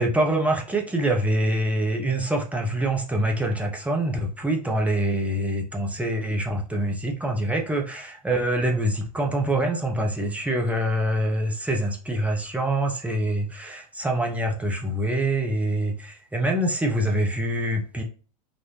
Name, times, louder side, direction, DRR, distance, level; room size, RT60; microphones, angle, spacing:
voice 1, 0.0-18.0, right 1 dB, 5° right, 1 dB, 0.9 m, -25 dB
4.1 x 2.4 x 3.1 m, 0.39 s
figure-of-eight pair, 80°, 21 cm